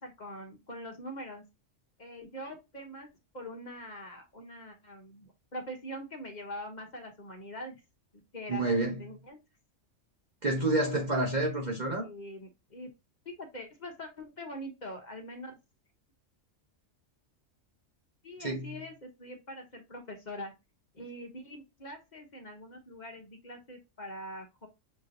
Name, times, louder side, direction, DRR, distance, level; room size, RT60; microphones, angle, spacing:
voice 1, 0.0-1.4 2.0-3.1 3.3-7.8 8.3-9.4 12.0-12.9 13.2-15.6 18.2-20.5 20.9-24.7, equal, 40° left, 0.9 m, -43 dB
voice 2, 8.5-9.0 10.4-12.1 18.4-18.7, right 2 dB, 35° right, 1.0 m, -29 dB
6.4 x 3.0 x 2.6 m
omnidirectional pair, 1.4 m